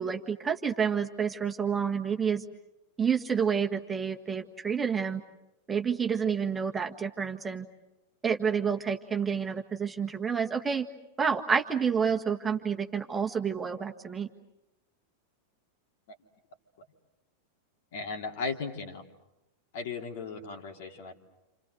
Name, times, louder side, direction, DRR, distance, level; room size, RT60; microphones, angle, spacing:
voice 1, 0.0-2.4 3.0-5.2 5.7-7.7 8.2-10.9 11.2-14.3, right 6 dB, 15° right, 3 dB, 1.6 m, -29 dB
voice 2, 17.9-19.0 19.7-21.1, left 4 dB, 55° left, 3 dB, 3.1 m, -36 dB
30.0 x 28.0 x 6.5 m, 0.92 s
figure-of-eight pair, 90°, 0 cm